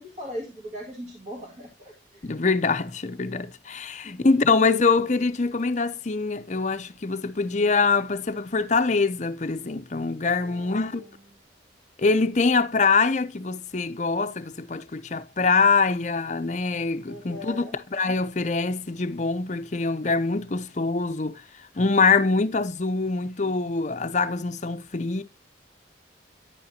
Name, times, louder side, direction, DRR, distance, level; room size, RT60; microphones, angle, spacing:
voice 1, 0.0-2.3 4.0-4.3 10.4-11.0 17.1-17.8, left 1 dB, 35° right, 2.1 m, -39 dB
voice 2, 2.2-11.1 12.0-17.6 17.9-21.4 21.7-25.2, left 4 dB, 40° left, 0.6 m, -24 dB
9.9 x 8.7 x 2.8 m
head